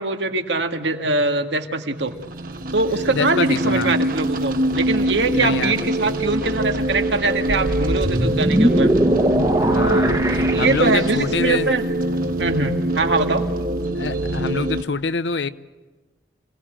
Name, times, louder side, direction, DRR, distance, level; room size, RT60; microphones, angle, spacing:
voice 1, 0.0-2.1 2.7-8.9 9.7-10.1 10.5-11.8 12.4-13.4, right 3 dB, 80° right, 1.9 m, -22 dB
sound 1, 2.0-14.8, right 1 dB, 50° right, 1.4 m, -24 dB
voice 2, 3.1-4.0 5.3-6.1 9.6-11.7 13.9-15.5, left 4 dB, 80° left, 0.8 m, -26 dB
sound 2, 7.5-11.4, right 1 dB, 20° right, 1.3 m, -21 dB
27.0 x 18.0 x 8.9 m
head